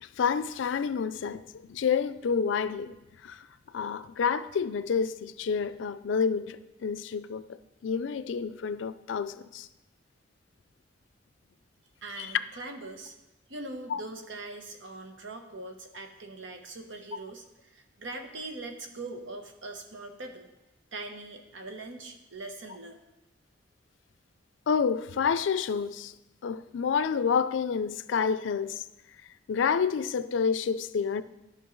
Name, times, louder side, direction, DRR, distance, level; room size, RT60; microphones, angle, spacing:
voice 1, 0.0-3.0 3.2-3.5 3.7-9.7 12.2-12.3 13.9-14.0 24.7-26.1 26.4-28.8 29.5-31.2, left 6 dB, 80° left, 0.4 m, -29 dB
voice 2, 12.0-13.1 13.5-20.5 20.9-23.0, right 2 dB, 85° right, 0.9 m, -41 dB
11.5 x 5.3 x 3.1 m
head